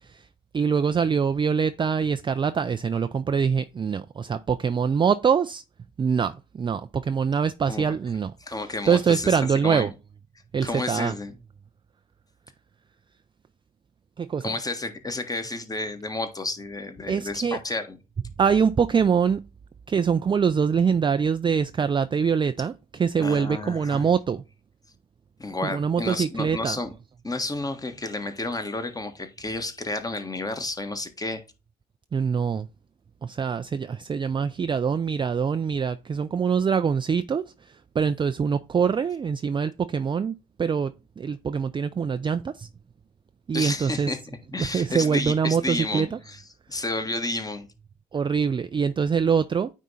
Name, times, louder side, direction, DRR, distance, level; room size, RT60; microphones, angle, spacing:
voice 1, 0.5-5.6 6.0-8.3 8.9-9.9 10.5-11.1 14.2-14.4 17.1-17.6 18.4-19.4 19.9-22.7 23.0-24.4 25.7-26.8 32.1-32.7 33.2-37.4 38.0-40.3 40.6-42.7 43.5-44.1 44.6-46.1 48.1-49.7, right 6 dB, 25° right, 0.4 m, -24 dB
voice 2, 8.4-9.9 10.6-11.3 14.4-18.0 23.2-24.1 25.4-26.9 27.2-31.4 43.5-47.7, left 2 dB, 15° left, 1.5 m, -31 dB
9.2 x 3.6 x 4.1 m
hypercardioid pair, 55°, 21 cm